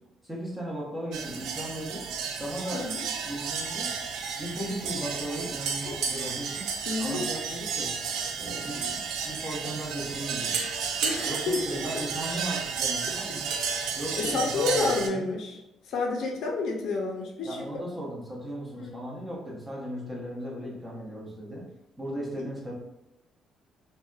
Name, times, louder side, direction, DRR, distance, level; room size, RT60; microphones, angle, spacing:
voice 1, 0.2-2.1 2.4-2.9 3.3-3.9 4.4-6.7 7.0-7.9 8.4-10.6 11.3-13.5 13.9-15.3 17.4-21.7 22.0-22.7, right 1 dB, 10° right, -4 dB, 0.5 m, -36 dB
sound 1, 1.1-15.1, right 6 dB, 80° right, 0.3 m, -32 dB
voice 2, 2.7-3.0 5.8-6.0 6.9-7.2 11.0-11.6 14.2-17.7 18.8-18.9 22.3-22.4, left 3 dB, 60° left, 0 dB, 0.5 m, -30 dB
2.6 x 2.1 x 2.3 m, 0.92 s
cardioid pair, 175°, 0 cm